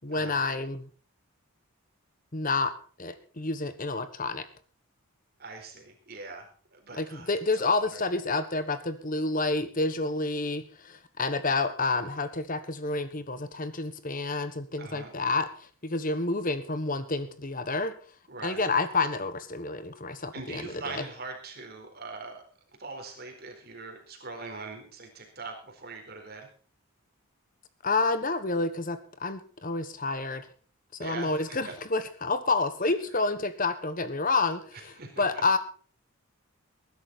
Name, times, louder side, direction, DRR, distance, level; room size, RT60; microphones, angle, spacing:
voice 1, 0.0-0.9 2.3-2.7 3.0-4.5 7.0-17.9 18.4-21.0 27.8-30.5 30.9-35.6, left 3 dB, 40° left, 12 dB, 1.3 m, -29 dB
voice 2, 5.4-8.0 14.8-15.1 18.3-18.7 20.3-22.4 22.8-26.5 31.0-31.7 32.8-32.9 34.7-35.4, right 3 dB, 45° right, 3 dB, 4.3 m, -42 dB
20.0 x 11.0 x 4.2 m, 0.40 s
head